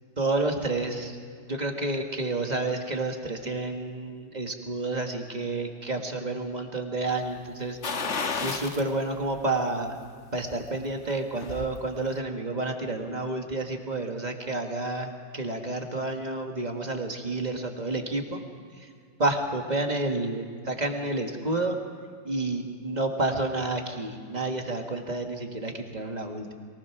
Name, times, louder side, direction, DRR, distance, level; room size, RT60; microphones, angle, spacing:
voice 1, 0.2-1.2 1.5-7.8 8.4-10.0 10.3-18.4 18.7-18.9 19.2-21.8 22.2-26.5, right 2 dB, 25° right, 3 dB, 1.5 m, -30 dB
sound 1, 7.8-8.9 9.3-9.4 10.9-11.7 12.1-12.2, left 4 dB, 40° left, 1.3 m, -31 dB
23.5 x 19.0 x 5.9 m, 2.1 s
omnidirectional pair, 2.1 m